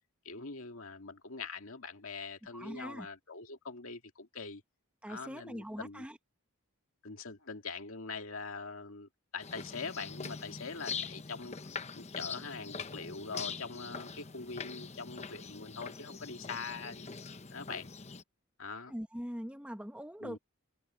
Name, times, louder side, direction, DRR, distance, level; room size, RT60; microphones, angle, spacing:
voice 1, 0.2-4.6 5.1-6.1 7.0-11.6 11.9-17.1 17.5-17.9 18.6-18.9 20.2-20.4, left 4 dB, 70° left, 2.1 m, -43 dB
voice 2, 2.5-3.1 5.0-6.2 18.9-20.4, equal, 5° right, 1.7 m, -42 dB
sound 1, 9.4-18.2, left 5 dB, 30° left, 0.9 m, -43 dB
head